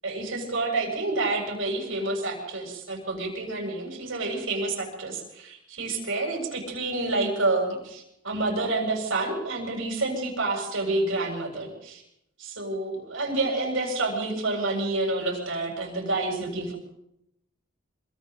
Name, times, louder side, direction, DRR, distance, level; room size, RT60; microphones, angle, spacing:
voice 1, 0.0-12.0 12.4-16.7, right 2 dB, 75° right, 0 dB, 7.5 m, -28 dB
27.5 x 23.5 x 4.1 m, 0.82 s
head